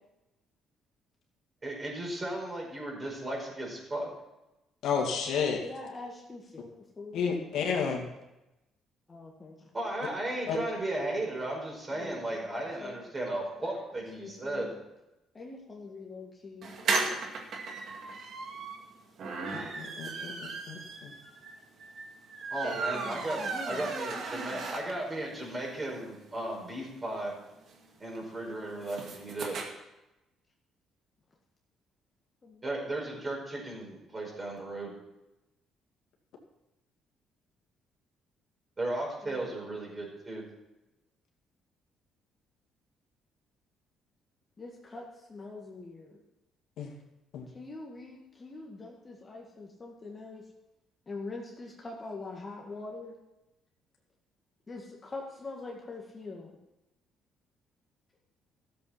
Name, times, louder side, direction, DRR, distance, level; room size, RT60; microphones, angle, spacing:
voice 1, 1.6-4.1 9.7-14.7 22.5-27.3 28.0-29.6 32.6-34.9 38.8-40.4, right 1 dB, 25° right, -1 dB, 5.0 m, -35 dB
voice 2, 4.8-5.6 7.1-8.1 10.5-10.6 19.5-21.1 46.8-46.9 47.3-47.5, left 6 dB, 75° left, 0 dB, 2.3 m, -31 dB
voice 3, 5.6-7.5 9.1-9.7 11.9-12.2 12.8-12.9 13.6-13.7 14.2-14.7 15.3-16.7 23.4-24.2 32.4-32.6 39.2-39.5 44.6-45.0 45.3-46.2 47.5-50.4 51.1-53.1 54.7-56.6, left 3 dB, 30° left, -1 dB, 1.9 m, -43 dB
sound 1, 16.6-25.2 25.6-25.7 25.9-26.0 26.3-29.7, right 4 dB, 55° right, 2.0 m, -36 dB
13.5 x 7.8 x 5.8 m, 0.96 s
cardioid pair, 90°, 0 cm